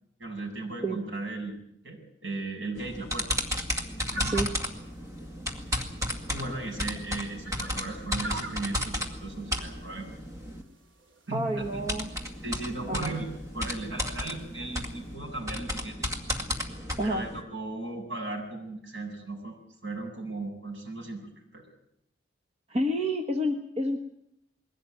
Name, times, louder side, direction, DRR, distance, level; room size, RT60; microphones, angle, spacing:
voice 1, 0.2-1.6 1.8-3.3 4.1-4.4 6.3-10.1 11.3-11.8 12.4-16.1 17.0-21.6, right 2 dB, 70° right, 0 dB, 7.5 m, -37 dB
sound 1, 2.8-10.6 11.6-17.4, equal, 15° right, 2.1 m, -34 dB
sound 2, 3.8-15.1, right 1 dB, 85° right, 2.8 m, -47 dB
voice 2, 11.3-12.1 12.9-13.1 17.0-17.3 22.7-24.0, equal, 35° right, 3 dB, 1.3 m, -29 dB
21.5 x 16.5 x 9.2 m, 0.77 s
head